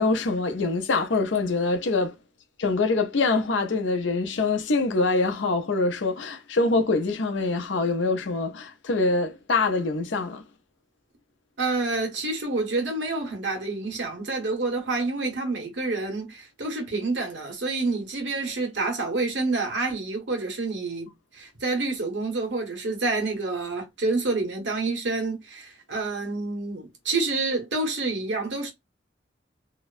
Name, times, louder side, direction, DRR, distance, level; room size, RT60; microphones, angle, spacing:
voice 1, 0.0-2.1 2.6-10.4, left 3 dB, 90° left, 0.6 m, -24 dB
voice 2, 11.6-28.7, right 3 dB, 75° right, 1.2 m, -28 dB
2.8 x 2.1 x 2.4 m
head